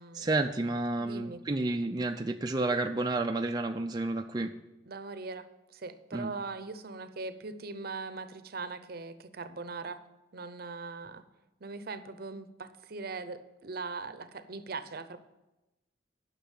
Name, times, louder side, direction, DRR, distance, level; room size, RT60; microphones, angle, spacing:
voice 1, 0.1-4.5 6.1-6.3, right 2 dB, 20° right, 4 dB, 0.4 m, -30 dB
voice 2, 1.0-1.4 4.9-10.0 10.3-11.2 11.6-15.2, right 4 dB, 55° right, 11 dB, 0.7 m, -40 dB
10.5 x 6.0 x 7.3 m, 1.0 s
head